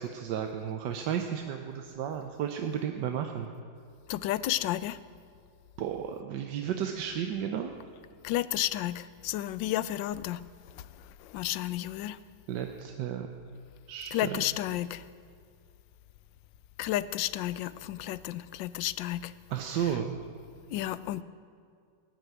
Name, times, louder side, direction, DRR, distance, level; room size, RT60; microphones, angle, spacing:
voice 1, 0.0-3.5 5.8-7.7 12.5-13.3 13.9-14.4 19.5-20.2, right 9 dB, 75° right, 1.4 m, -33 dB
voice 2, 4.1-5.0 8.2-12.2 14.1-15.1 16.8-19.3 19.7-20.0 20.7-21.2, left 14 dB, 90° left, 1.3 m, -32 dB
16.0 x 9.4 x 9.3 m
omnidirectional pair, 2.0 m